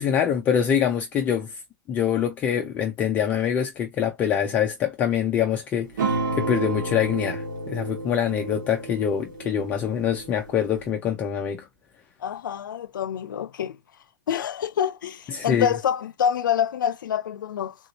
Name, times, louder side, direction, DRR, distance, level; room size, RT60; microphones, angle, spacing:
voice 1, 0.0-1.6 1.9-5.9 6.3-11.7 15.3-15.7, left 8 dB, 15° left, 0.4 m, -24 dB
sound 1, 6.0-10.9, right 3 dB, 75° right, 2.0 m, -31 dB
voice 2, 12.2-13.8 14.3-17.7, left 8 dB, 85° left, 0.6 m, -26 dB
3.7 x 2.6 x 2.8 m
hypercardioid pair, 170°, 10 cm